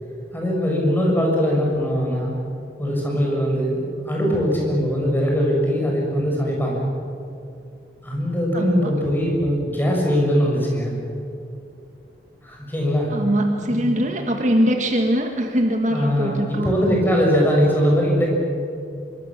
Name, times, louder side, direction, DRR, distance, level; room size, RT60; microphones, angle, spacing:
voice 1, 0.3-2.3 2.8-6.8 8.0-10.9 12.4-13.1 13.8-13.9 15.9-18.3, equal, 10° left, -2 dB, 6.6 m, -21 dB
voice 2, 8.5-8.9 13.1-16.7, equal, 45° right, 3 dB, 2.0 m, -22 dB
25.5 x 24.5 x 7.6 m, 2.5 s
head